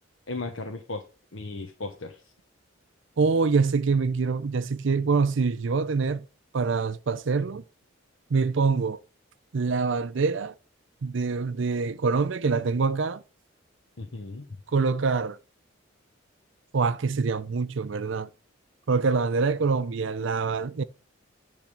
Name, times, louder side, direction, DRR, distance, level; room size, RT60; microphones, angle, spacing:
voice 1, 0.3-1.1 1.3-2.3 14.0-14.5, left 3 dB, 75° left, 1.1 m, -36 dB
voice 2, 3.2-6.3 6.5-7.6 8.3-9.0 9.5-10.5 11.0-13.2 14.7-15.4 16.7-18.3 18.9-20.8, right 4 dB, 65° right, 0.5 m, -25 dB
10.0 x 3.5 x 7.2 m
head